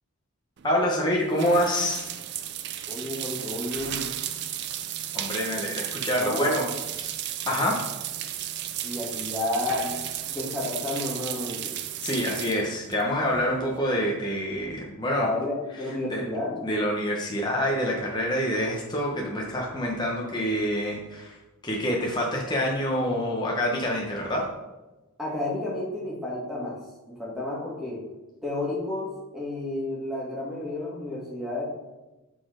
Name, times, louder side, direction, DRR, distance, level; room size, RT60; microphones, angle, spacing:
voice 1, 0.6-2.1 5.1-6.7 7.0-7.1 7.5-7.8 12.0-15.3 16.1-16.2 16.6-21.4 21.6-24.5, equal, 20° left, -2 dB, 0.8 m, -26 dB
sound 1, 0.6-13.8, right 11 dB, 50° right, 0.4 m, -34 dB
voice 2, 2.9-4.1 6.0-6.7 8.8-10.0 10.3-11.8 15.1-16.7 25.2-26.8 27.2-28.0 28.4-31.6, left 2 dB, ahead, -5 dB, 1.8 m, -31 dB
6.1 x 4.2 x 5.0 m, 1.1 s
head